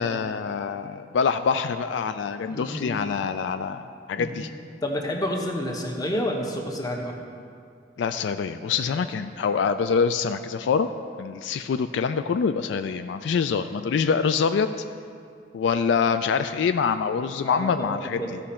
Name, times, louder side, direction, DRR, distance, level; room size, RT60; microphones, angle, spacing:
voice 1, 0.0-4.5 8.0-10.9 11.2-14.7 15.5-18.4, left 6 dB, 75° left, 10 dB, 0.3 m, -25 dB
voice 2, 2.5-3.0 4.2-4.3 4.8-7.2 17.4-18.3, left 1 dB, 20° left, 1 dB, 1.0 m, -29 dB
14.0 x 5.1 x 4.3 m, 2.3 s
head